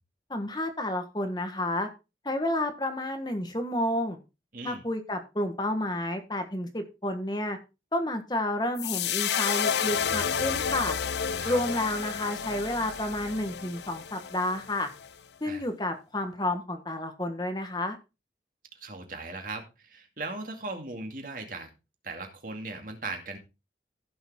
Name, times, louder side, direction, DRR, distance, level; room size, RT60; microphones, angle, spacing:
voice 1, 0.3-1.9 2.2-4.2 4.6-7.6 7.9-10.9 11.4-14.9 15.4-18.0, left 1 dB, 25° left, 7 dB, 1.5 m, -30 dB
voice 2, 4.5-4.8 11.4-11.6 15.4-15.7 18.7-21.7 22.0-23.4, right 3 dB, 50° right, 4 dB, 2.4 m, -38 dB
sound 1, 8.8-15.1, left 7 dB, 75° left, 0.6 m, -31 dB
15.5 x 7.0 x 3.7 m, 0.28 s
head